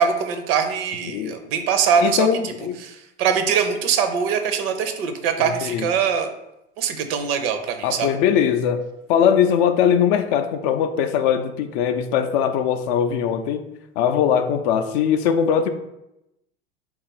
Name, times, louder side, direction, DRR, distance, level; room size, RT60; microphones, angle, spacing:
voice 1, 0.0-2.3 2.8-6.3 6.8-8.2, right 7 dB, 65° right, 8 dB, 0.6 m, -22 dB
voice 2, 2.0-2.8 5.4-5.9 7.8-8.8 9.1-13.6 14.0-15.7, left 8 dB, 55° left, 8 dB, 0.4 m, -20 dB
3.6 x 2.4 x 4.0 m, 0.88 s
hypercardioid pair, 85°, 32 cm